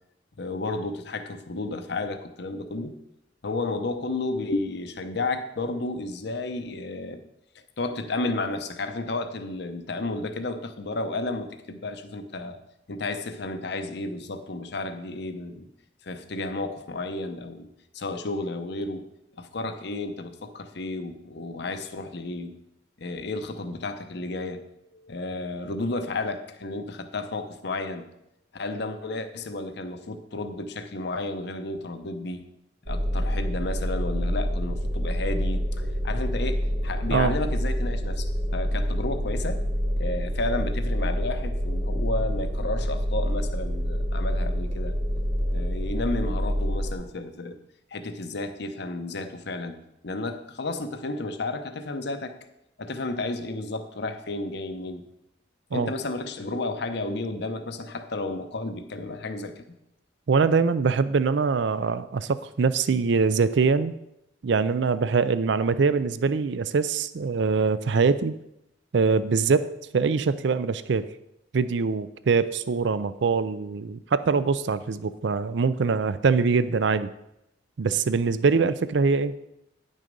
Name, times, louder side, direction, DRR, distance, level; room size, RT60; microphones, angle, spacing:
voice 1, 0.4-3.0 3.4-7.2 7.8-12.6 12.9-15.7 16.0-17.7 17.9-19.1 19.4-22.6 23.0-24.6 24.9-28.1 28.5-32.5 32.9-39.6 40.0-45.0 45.5-47.6 47.9-52.4 52.8-55.0 55.7-59.6, left 2 dB, 60° left, 8 dB, 0.8 m, -32 dB
sound 1, 32.9-46.9, equal, 50° right, 1.2 m, -27 dB
voice 2, 60.3-63.9 64.4-68.3 68.9-71.1 71.5-77.1 77.8-79.4, right 5 dB, 65° right, 14 dB, 0.4 m, -23 dB
9.9 x 6.4 x 5.3 m, 0.84 s
head